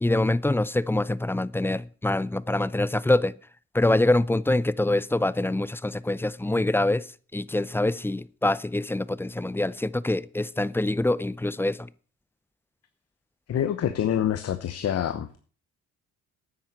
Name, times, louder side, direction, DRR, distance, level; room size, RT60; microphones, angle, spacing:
voice 1, 0.0-3.3 3.7-11.9, left 2 dB, 5° left, 0.5 m, -25 dB
voice 2, 13.5-15.3, left 10 dB, 55° left, 1.0 m, -26 dB
9.3 x 9.2 x 6.6 m
cardioid pair, 90°, 30 cm